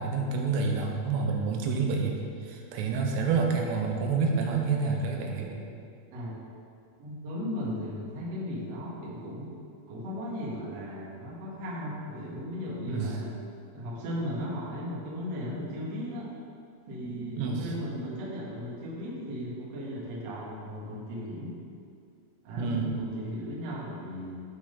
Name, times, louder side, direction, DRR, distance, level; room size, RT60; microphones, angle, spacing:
voice 1, 0.0-2.2 2.4-5.6 12.9-13.2 17.4-17.6 22.6-22.9, right 4 dB, 85° right, 1 dB, 3.6 m, -28 dB
voice 2, 7.0-9.5 9.9-13.3 13.7-16.3 16.9-21.5 22.4-24.3, equal, 55° right, -5 dB, 1.9 m, -36 dB
13.5 x 4.5 x 5.3 m, 2.3 s
omnidirectional pair, 5.8 m